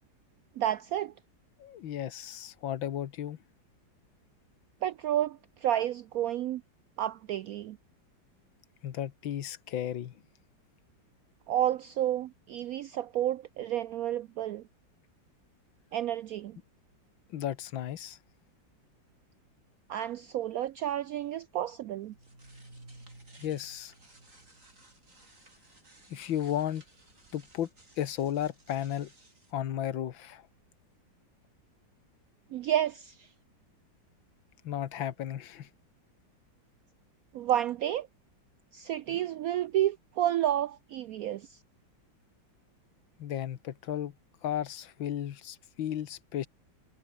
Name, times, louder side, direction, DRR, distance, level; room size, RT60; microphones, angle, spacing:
voice 1, 0.6-1.1 4.8-6.6 7.0-7.8 11.5-14.6 15.9-16.6 19.9-22.1 32.5-33.3 37.3-38.1 38.7-41.6, right 11 dB, 80° right, 0.8 m, -30 dB
voice 2, 1.6-3.4 8.8-10.2 17.3-18.2 23.4-23.9 26.1-26.8 27.3-27.7 28.0-29.1 29.5-30.5 34.6-35.7 43.2-44.2 44.4-46.5, left 11 dB, 90° left, 1.9 m, -34 dB
sound 1, 22.0-29.5, right 2 dB, 40° right, 6.5 m, -56 dB
omnidirectional pair, 2.1 m